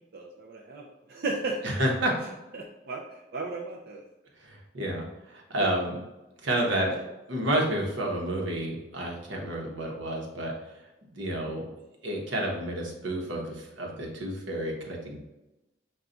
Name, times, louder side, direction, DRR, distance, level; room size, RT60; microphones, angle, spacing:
voice 1, 0.1-1.6 2.5-4.0 5.6-5.7 6.7-6.8, right 3 dB, 55° right, -2 dB, 0.4 m, -35 dB
voice 2, 1.6-2.1 4.4-6.0 6.4-7.0 7.3-10.5 11.1-11.7 12.0-15.2, right 1 dB, 80° right, -1 dB, 1.0 m, -30 dB
5.6 x 2.3 x 3.8 m, 0.99 s
head